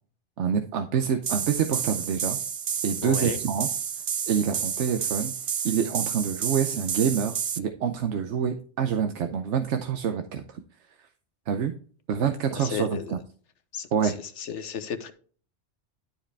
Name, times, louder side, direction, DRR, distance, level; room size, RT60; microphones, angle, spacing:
voice 1, 0.4-2.4 2.8-3.7 4.3-5.3 5.6-10.6 11.5-11.7 12.1-13.2 13.9-14.2, right 7 dB, 85° right, 1.0 m, -26 dB
sound 1, 1.2-7.6, right 7 dB, 55° right, 0.3 m, -30 dB
voice 2, 3.0-3.4 12.6-13.2 13.7-15.1, left 8 dB, 85° left, 1.2 m, -34 dB
12.0 x 4.9 x 3.3 m
omnidirectional pair, 1.2 m